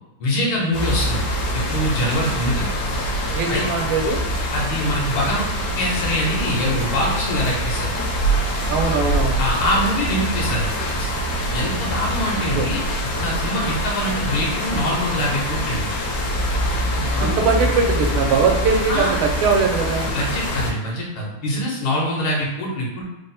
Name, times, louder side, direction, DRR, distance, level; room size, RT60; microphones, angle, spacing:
voice 1, 0.2-1.3 1.5-2.7 3.5-3.6 4.5-5.5 5.8-7.9 9.4-10.7 11.0-11.1 11.5-12.8 13.2-15.9 17.0-17.5 18.9-19.1 20.1-23.0, equal, 85° left, -3 dB, 1.8 m, -24 dB
sound 1, 0.7-20.7, equal, 65° left, 1.2 m, -24 dB
voice 2, 3.3-4.2 8.7-9.4 12.6-12.7 17.2-20.1, right 4 dB, 85° right, 2 dB, 1.5 m, -21 dB
3.9 x 2.0 x 4.1 m, 1.0 s
omnidirectional pair, 2.3 m